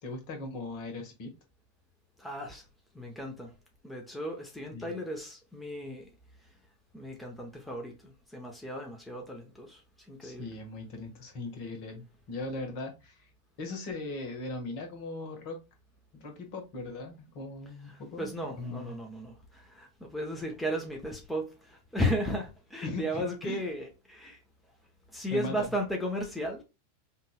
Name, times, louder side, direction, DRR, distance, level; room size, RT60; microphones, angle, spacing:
voice 1, 0.0-1.3 4.7-4.9 10.2-13.3 13.6-15.6 16.1-18.9 22.8-23.6 25.3-25.7, left 2 dB, 45° left, 1.3 m, -39 dB
voice 2, 2.2-2.7 2.9-3.5 3.8-6.1 6.4-6.6 6.9-10.5 17.8-24.4 25.1-26.6, equal, 5° left, 0.9 m, -35 dB
5.5 x 2.5 x 2.3 m
figure-of-eight pair, 90°, 0 cm